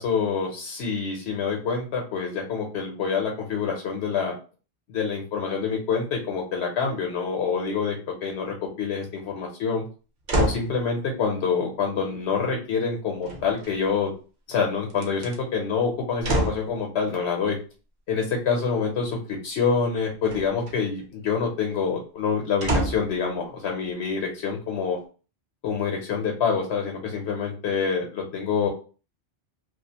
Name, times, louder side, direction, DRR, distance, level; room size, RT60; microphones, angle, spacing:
voice 1, 0.0-4.3 4.9-9.9 10.4-14.1 14.5-17.6 18.1-25.0 25.6-28.7, left 5 dB, 85° left, 1 dB, 0.9 m, -26 dB
sound 1, 10.3-10.7 13.2-14.0 14.9-15.3 16.2-16.7 20.2-20.8 22.6-23.2 23.8-23.9, right 1 dB, 50° right, 0.7 m, -26 dB
2.4 x 2.3 x 2.7 m, 0.36 s
omnidirectional pair, 1.1 m